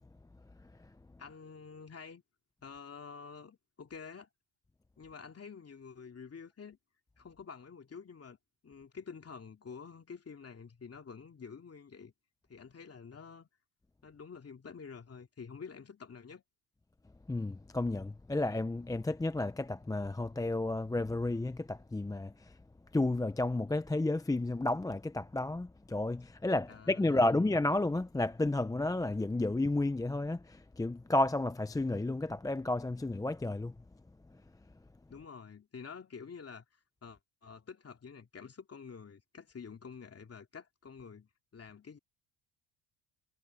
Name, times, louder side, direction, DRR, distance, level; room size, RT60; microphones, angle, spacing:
voice 1, 1.2-2.2 2.6-4.3 5.0-6.8 7.2-8.4 8.6-12.1 12.5-13.5 14.0-16.4 26.7-27.4 35.1-36.6 37.0-42.0, left 5 dB, 30° left, 2.8 m, -48 dB
voice 2, 17.3-22.6 22.9-33.7, left 2 dB, 10° left, 0.6 m, -32 dB
supercardioid pair, 85°, 45 cm